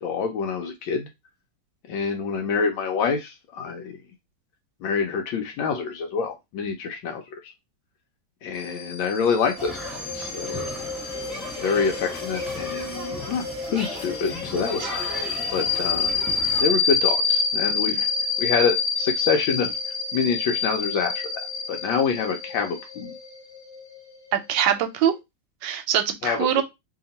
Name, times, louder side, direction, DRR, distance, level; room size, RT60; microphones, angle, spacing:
voice 1, 0.0-1.1 1.9-4.0 4.8-7.5 8.4-10.7 11.6-13.4 13.7-15.2 15.5-16.1 16.6-18.1 18.4-19.8 20.1-21.4 21.7-23.1 26.2-26.6, left 5 dB, 80° left, 1.3 m, -26 dB
sound 1, 8.6-24.8, left 5 dB, 40° left, 1.0 m, -28 dB
sound 2, 9.6-16.6, left 1 dB, ahead, 0.9 m, -36 dB
voice 2, 24.3-25.1 25.6-26.6, right 10 dB, 75° right, 1.2 m, -23 dB
2.9 x 2.8 x 3.9 m
omnidirectional pair, 2.1 m